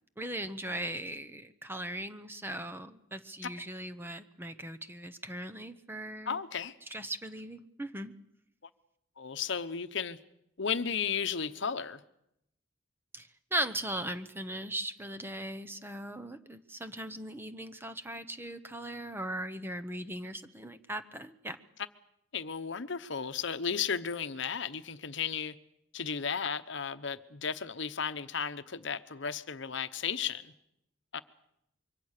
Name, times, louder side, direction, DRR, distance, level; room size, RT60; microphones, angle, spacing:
voice 1, 0.2-6.4 6.9-8.1 13.1-21.6, right 1 dB, 10° right, 0.9 m, -38 dB
voice 2, 6.3-6.7 9.2-10.2 10.6-12.0 22.3-25.5 25.9-30.4 31.1-31.2, left 6 dB, 65° left, 0.9 m, -34 dB
25.0 x 23.5 x 6.6 m
head